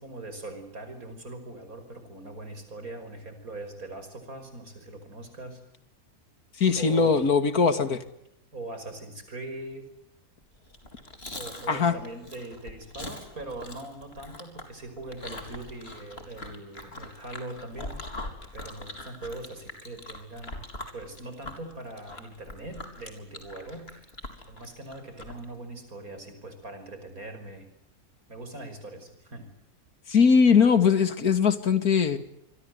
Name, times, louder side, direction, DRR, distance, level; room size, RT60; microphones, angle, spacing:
voice 1, 0.0-5.6 6.8-7.2 8.5-9.9 11.3-18.2 18.5-20.5 20.9-24.1 24.5-27.7 28.3-29.5, right 2 dB, 65° right, 8 dB, 6.0 m, -41 dB
voice 2, 6.6-8.0 11.7-11.9 30.1-32.2, left 6 dB, 75° left, 11 dB, 2.5 m, -20 dB
Chewing mastication, 10.6-25.4, left 2 dB, 40° left, 4.3 m, -42 dB
27.5 x 23.0 x 8.1 m, 0.76 s
omnidirectional pair, 1.6 m